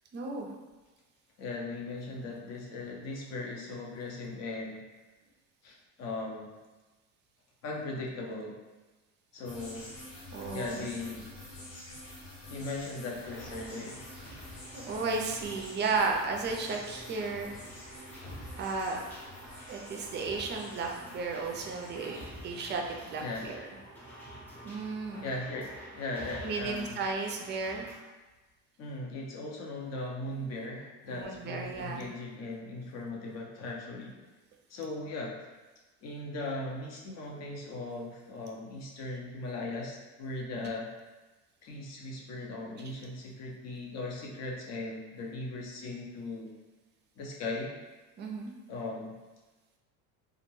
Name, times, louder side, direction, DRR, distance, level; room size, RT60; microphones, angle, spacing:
voice 1, 0.1-0.5 10.3-10.9 14.7-17.5 18.6-19.0 19.7-22.2 22.4-23.7 24.6-25.3 26.4-27.9 31.1-32.1 40.6-40.7 48.2-48.5, right 4 dB, 30° right, 1 dB, 0.4 m, -34 dB
voice 2, 1.4-4.8 5.6-6.5 7.6-8.6 9.3-9.9 10.5-11.3 12.5-14.0 23.2-23.5 25.2-27.0 28.8-34.2 34.7-35.4 36.0-40.9 41.6-46.5 47.2-47.7 48.7-49.1, left 2 dB, 45° left, -1 dB, 0.6 m, -38 dB
sound 1, 9.4-22.7, left 1 dB, 70° left, 1.3 m, -49 dB
sound 2, 13.2-28.0, equal, 5° left, 0.6 m, -48 dB
2.3 x 2.1 x 3.0 m, 1.2 s
supercardioid pair, 105°, 36 cm